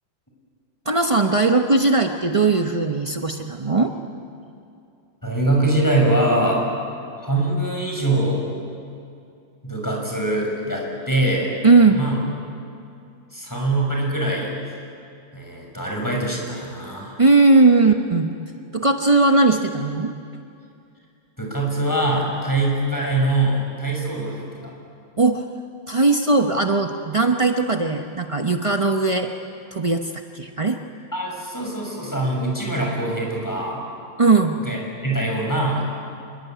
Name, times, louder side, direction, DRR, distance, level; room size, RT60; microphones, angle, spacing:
voice 1, 0.8-3.9 11.6-12.0 17.2-18.4 18.7-20.1 25.2-25.4 25.9-29.3 29.7-30.8 34.2-34.6, right 3 dB, 40° right, 4 dB, 0.4 m, -18 dB
voice 2, 5.2-6.6 7.2-8.4 9.6-11.5 11.9-12.2 13.3-14.5 15.3-17.2 21.4-24.7 31.1-33.8 34.6-34.8 35.0-35.9, right 1 dB, 10° left, -1 dB, 6.6 m, -23 dB
26.5 x 22.5 x 9.4 m, 2.5 s
omnidirectional pair, 2.3 m